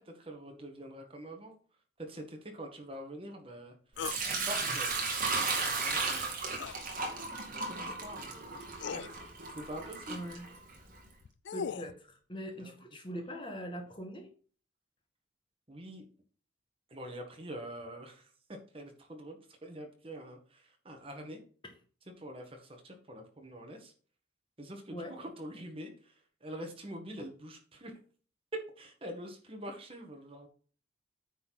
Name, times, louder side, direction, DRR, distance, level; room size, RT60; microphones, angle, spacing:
voice 1, 0.0-1.5 2.0-3.8 4.2-6.4 7.3-8.6 8.9-10.4 12.6-12.7 15.7-16.0 16.9-21.4 22.1-23.9 24.6-26.1 26.4-27.9 28.5-30.5, right 1 dB, 30° right, 3 dB, 1.8 m, -45 dB
sound 1, 4.0-4.2 6.5-6.8 8.2-8.3 8.8-9.1 11.1-11.9, left 6 dB, 65° left, 0.4 m, -38 dB
Sink (filling or washing) / Liquid, 4.0-11.0, right 4 dB, 45° right, 2.3 m, -35 dB
voice 2, 10.1-10.5 11.5-14.3 24.9-25.1, equal, 25° left, 3 dB, 1.9 m, -42 dB
9.3 x 4.5 x 6.0 m, 0.42 s
head